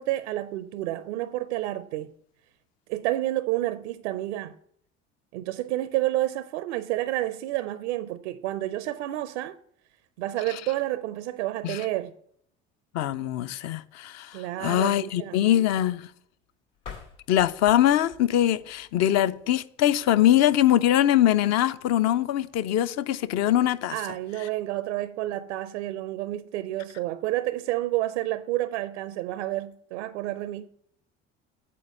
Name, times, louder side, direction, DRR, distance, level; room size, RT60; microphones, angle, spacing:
voice 1, 0.0-2.1 2.9-4.6 5.3-9.6 10.2-12.1 14.3-15.4 23.9-30.7, right 15 dB, 70° right, 0.5 m, -30 dB
voice 2, 12.9-16.1 17.3-24.0, left 12 dB, 45° left, 0.5 m, -23 dB
sound 1, 16.7-19.6, left 6 dB, 75° left, 2.5 m, -47 dB
8.4 x 4.5 x 5.5 m
figure-of-eight pair, 60°, 36 cm